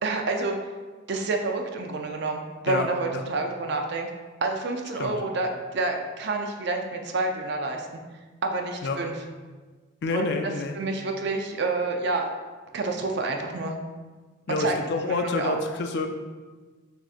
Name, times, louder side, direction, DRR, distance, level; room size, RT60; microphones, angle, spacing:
voice 1, 0.0-0.6 1.1-4.1 4.4-7.9 8.4-9.2 10.1-12.3 12.7-13.8 14.6-14.7 15.0-15.5, right 3 dB, 50° right, 3 dB, 0.4 m, -28 dB
voice 2, 10.0-10.8 14.5-16.1, left 3 dB, 50° left, 5 dB, 0.4 m, -28 dB
6.0 x 2.7 x 2.4 m, 1.4 s
head